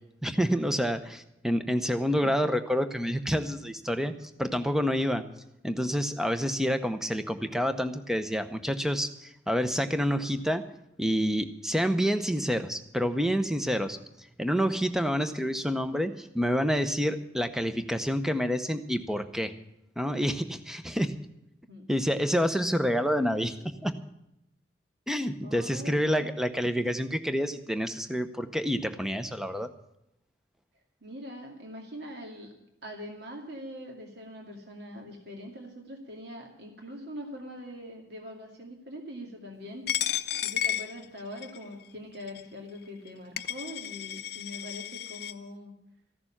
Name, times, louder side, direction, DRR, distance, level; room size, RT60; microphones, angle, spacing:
voice 1, 0.2-5.2 5.6-10.6 11.0-14.0 14.4-19.5 20.0-21.1 21.9-23.5 23.8-23.9 25.1-29.7, equal, 5° right, 9 dB, 0.7 m, -28 dB
voice 2, 2.1-2.4 21.7-21.9 25.4-26.3 31.0-32.5 32.8-39.8 40.4-45.7, equal, 60° right, 1 dB, 2.4 m, -43 dB
Coin (dropping), 39.9-41.6 42.3-42.4 43.1-43.2 43.4-45.3, left 11 dB, 55° left, 0.5 m, -32 dB
15.0 x 6.8 x 9.8 m, 0.84 s
head